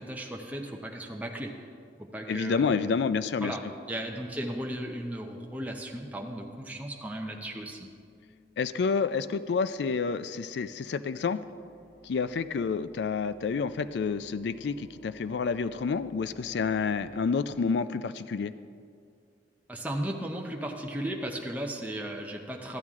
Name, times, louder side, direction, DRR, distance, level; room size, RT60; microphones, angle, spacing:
voice 1, 0.0-1.5 2.0-3.0 3.4-3.6 3.9-7.9 19.7-22.8, right 1 dB, 10° right, 0 dB, 0.7 m, -36 dB
voice 2, 2.3-3.6 8.6-11.4 12.0-18.5, left 5 dB, 65° left, 13 dB, 0.4 m, -29 dB
sound 1, 4.0-17.4, right 2 dB, 40° left, 1.5 m, -56 dB
13.0 x 8.9 x 3.6 m, 2.3 s
head